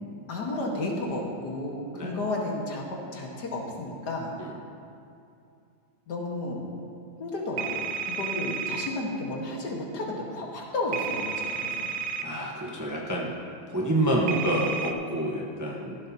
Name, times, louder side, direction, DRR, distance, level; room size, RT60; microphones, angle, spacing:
voice 1, 0.3-2.8 3.1-4.3 6.1-6.7 7.2-11.9, left 2 dB, 60° left, -1 dB, 2.0 m, -32 dB
sound 1, 7.6-8.9 10.9-12.2 14.3-14.9, right 6 dB, 85° right, 1.4 m, -32 dB
voice 2, 12.2-13.3 13.7-16.0, right 1 dB, 15° right, -3 dB, 0.8 m, -28 dB
15.5 x 11.5 x 2.9 m, 2.6 s
omnidirectional pair, 2.1 m